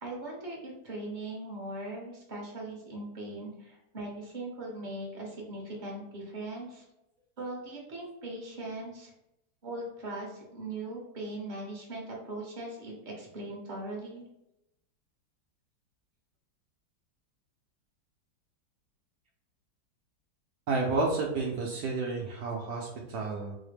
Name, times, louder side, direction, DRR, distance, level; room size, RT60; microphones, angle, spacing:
voice 1, 0.0-6.8 7.4-9.1 9.6-14.2, right 2 dB, 35° right, -3 dB, 0.9 m, -40 dB
voice 2, 20.7-23.6, right 3 dB, 70° right, -1 dB, 1.0 m, -31 dB
4.1 x 2.1 x 3.2 m, 0.85 s
omnidirectional pair, 1.9 m